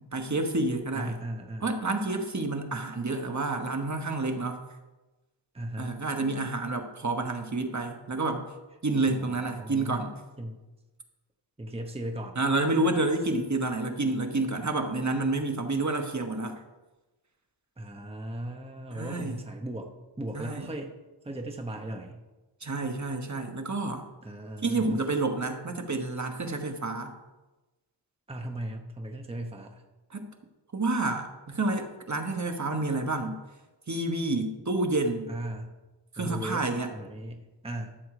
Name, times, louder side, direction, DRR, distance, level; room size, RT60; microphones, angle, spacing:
voice 1, 0.0-1.2 1.6-4.6 5.8-8.5 8.8-10.2 12.3-16.6 18.9-19.4 20.3-20.7 22.6-24.0 24.6-27.1 30.1-30.3 30.7-33.4 33.9-35.3 36.1-36.9, right 2 dB, 40° right, 4 dB, 1.2 m, -29 dB
voice 2, 0.9-1.6 5.5-5.9 9.1-10.0 10.4-10.6 11.6-12.4 17.8-21.0 21.2-22.2 24.2-25.0 28.3-29.8 35.3-35.7 36.2-38.0, right 1 dB, 15° right, 3 dB, 0.9 m, -37 dB
12.5 x 6.3 x 4.9 m, 1.1 s
wide cardioid pair, 80°, 43 cm